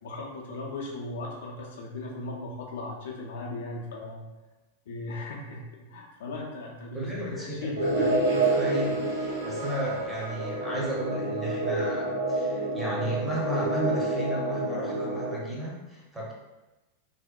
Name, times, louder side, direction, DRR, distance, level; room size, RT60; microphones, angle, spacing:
voice 1, 0.0-4.2 4.9-7.8, left 2 dB, 60° left, -2 dB, 0.4 m, -37 dB
voice 2, 6.9-16.3, right 1 dB, 10° right, -5 dB, 0.7 m, -34 dB
sound 1, 7.8-15.3, right 2 dB, 70° right, 1.0 m, -28 dB
2.6 x 2.0 x 2.3 m, 1.1 s
figure-of-eight pair, 90°, 0 cm